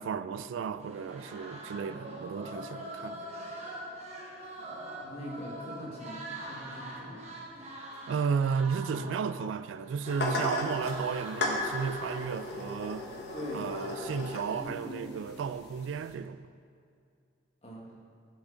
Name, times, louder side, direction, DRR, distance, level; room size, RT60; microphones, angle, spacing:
voice 1, 0.0-3.2 8.1-13.1 13.5-16.5, right 6 dB, 85° right, 0.3 m, -33 dB
sound 1, 0.8-14.6, right 1 dB, 35° right, 1.1 m, -44 dB
voice 2, 5.0-7.2 13.3-13.6 14.6-15.1 17.6-17.9, equal, 30° left, 1.6 m, -42 dB
sound 2, 10.0-16.1, left 2 dB, 55° left, 1.1 m, -36 dB
11.5 x 6.3 x 3.9 m
head